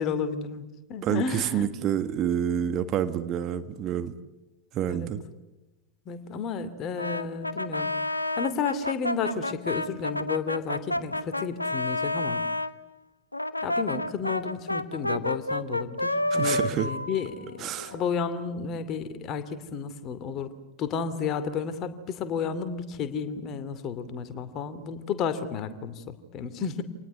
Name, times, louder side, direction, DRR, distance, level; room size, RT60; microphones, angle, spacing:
voice 1, 0.0-1.7 4.9-5.1 6.1-7.9 8.4-12.4 13.6-26.9, left 6 dB, 35° left, 11 dB, 2.7 m, -32 dB
voice 2, 1.0-4.1 4.7-5.2 16.3-16.9 17.6-18.0, right 9 dB, 35° right, 11 dB, 1.6 m, -28 dB
Brass instrument, 7.0-12.7 13.3-18.1, left 2 dB, 85° left, 1.1 m, -30 dB
27.5 x 20.0 x 9.4 m, 1.1 s
figure-of-eight pair, 90°, 0 cm